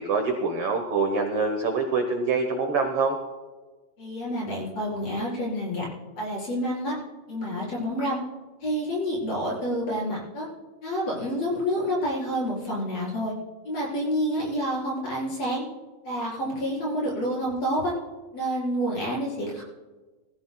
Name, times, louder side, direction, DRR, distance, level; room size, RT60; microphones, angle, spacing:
voice 1, 0.0-3.2, right 4 dB, 75° right, 4 dB, 1.2 m, -25 dB
voice 2, 4.0-5.9 6.2-6.9 7.3-8.2 8.6-10.5 10.8-13.3 13.6-15.6 16.0-17.9 18.3-19.6, equal, 45° left, -5 dB, 5.5 m, -28 dB
22.5 x 15.0 x 2.3 m, 1.3 s
omnidirectional pair, 4.2 m